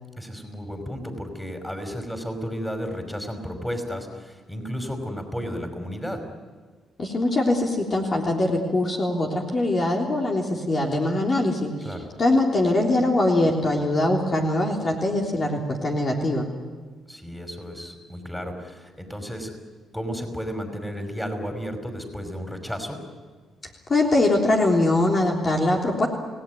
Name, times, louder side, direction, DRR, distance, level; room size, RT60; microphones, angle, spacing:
voice 1, 0.2-6.2 11.8-12.1 17.1-19.5 19.9-23.0, equal, 5° left, 6 dB, 5.2 m, -33 dB
voice 2, 7.0-11.7 12.2-16.5 23.9-26.1, left 2 dB, 40° left, 0 dB, 3.5 m, -22 dB
29.5 x 18.0 x 9.4 m, 1.5 s
cardioid pair, 90°, 0 cm